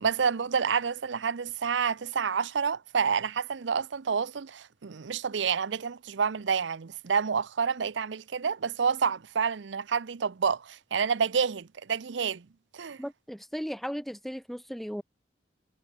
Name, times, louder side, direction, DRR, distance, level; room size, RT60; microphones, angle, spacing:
voice 1, 0.0-12.4 12.7-13.0, right 6 dB, 80° right, 0.6 m, -29 dB
voice 2, 13.0-15.0, equal, ahead, 2.3 m, -36 dB
head